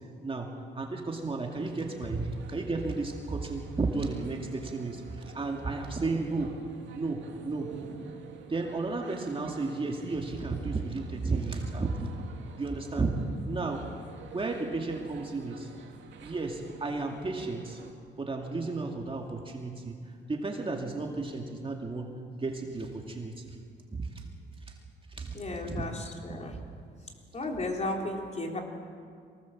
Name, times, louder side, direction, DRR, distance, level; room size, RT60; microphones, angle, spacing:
voice 1, 0.2-6.6 6.9-7.7 8.5-12.1 12.6-13.2 13.5-13.9 14.3-15.7 16.2-17.8 18.2-23.6 23.9-24.2 24.7-24.8 25.1-25.4 25.7-25.9 26.3-26.6, right 3 dB, 25° right, 1 dB, 2.2 m, -33 dB
sound 1, 1.5-17.9, right 6 dB, 70° right, 2.6 m, -49 dB
voice 2, 25.3-26.6 27.3-28.6, left 2 dB, 35° left, 2 dB, 3.7 m, -34 dB
23.5 x 18.0 x 7.4 m, 2.2 s
cardioid pair, 90°, 20 cm